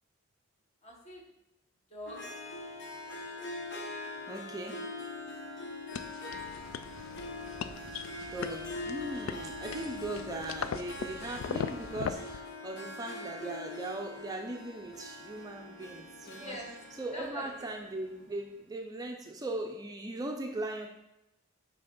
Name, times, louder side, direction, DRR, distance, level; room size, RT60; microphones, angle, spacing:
voice 1, 0.8-1.2 1.9-2.2 16.4-17.7, left 1 dB, 35° left, -1 dB, 1.2 m, -44 dB
Harp, 2.1-18.6, left 2 dB, 65° left, 0.8 m, -43 dB
voice 2, 4.3-4.9 8.3-16.6 17.0-20.9, right 2 dB, 20° right, 2 dB, 0.4 m, -39 dB
sound 1, 5.9-12.4, left 7 dB, 90° left, 0.3 m, -39 dB
sound 2, 6.3-12.2, right 2 dB, 90° right, 0.5 m, -52 dB
5.6 x 3.4 x 5.2 m, 0.90 s
head